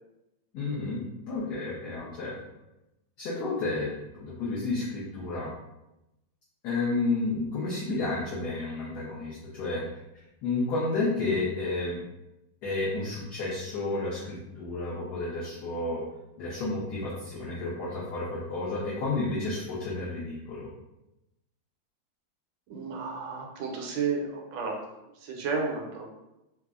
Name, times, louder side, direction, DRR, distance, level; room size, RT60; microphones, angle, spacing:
voice 1, 0.5-2.3 3.2-5.5 6.6-9.8 10.4-12.0 12.6-16.0 16.4-20.7, left 3 dB, 70° left, -6 dB, 1.0 m, -31 dB
voice 2, 22.7-24.8 25.2-26.1, right 4 dB, 75° right, 0 dB, 1.2 m, -32 dB
3.4 x 2.0 x 2.3 m, 0.92 s
omnidirectional pair, 2.1 m